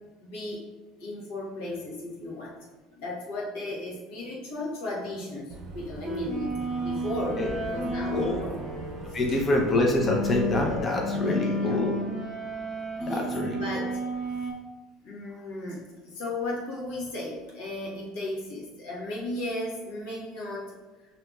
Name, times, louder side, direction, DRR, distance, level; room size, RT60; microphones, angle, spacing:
voice 1, 0.2-0.6 1.0-2.6 2.9-6.5 6.8-7.4 7.7-8.6 9.1-9.4 11.2-11.8 13.0-14.0 15.0-20.8, left 2 dB, 85° left, -4 dB, 1.1 m, -35 dB
Boat Water vehicle / Engine, 5.5-10.8, right 3 dB, 50° right, 0.6 m, -40 dB
sound 1, 6.0-14.5, equal, 10° left, 0.9 m, -32 dB
voice 2, 8.1-8.4 9.1-12.0 13.1-13.6, left 2 dB, 25° left, -1 dB, 0.6 m, -26 dB
5.4 x 2.8 x 2.3 m, 1.3 s
cardioid pair, 130°, 0 cm